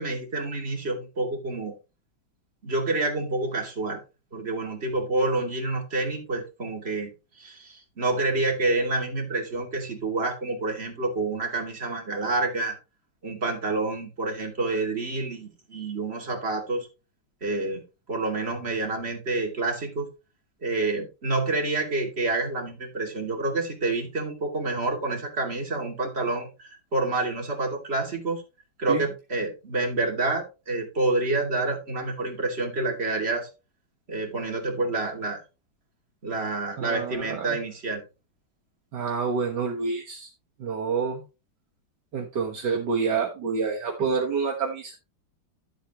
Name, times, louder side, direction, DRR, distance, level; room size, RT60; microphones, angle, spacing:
voice 1, 0.0-1.7 2.6-4.0 4.3-7.1 7.4-12.8 13.2-16.9 17.4-17.8 18.1-20.1 20.6-28.4 28.8-33.5 34.1-35.4 36.2-38.0, right 2 dB, 30° right, 1 dB, 2.9 m, -28 dB
voice 2, 36.8-37.6 38.9-40.3 40.6-41.2 42.1-45.0, right 5 dB, 65° right, 0 dB, 1.9 m, -28 dB
11.5 x 8.1 x 3.0 m, 0.28 s
omnidirectional pair, 2.1 m